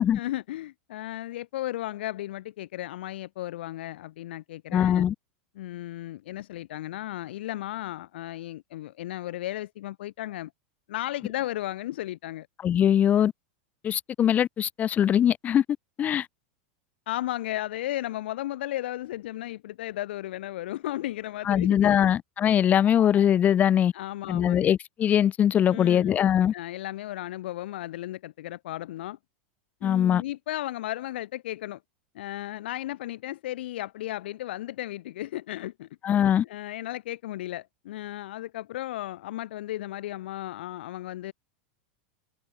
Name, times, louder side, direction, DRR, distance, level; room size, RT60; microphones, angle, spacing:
voice 1, 0.1-5.1 5.6-10.5 10.9-12.5 17.1-22.1 23.9-24.7 25.7-26.2 26.5-29.2 29.8-31.8 32.1-35.9 36.1-41.3, left 14 dB, 75° left, 1.9 m, -35 dB
voice 2, 4.7-5.1 12.6-13.3 13.8-15.6 16.0-16.3 21.5-23.9 24.3-26.5 29.8-30.2 36.0-36.4, left 10 dB, 25° left, 0.7 m, -22 dB
supercardioid pair, 125°, 6 cm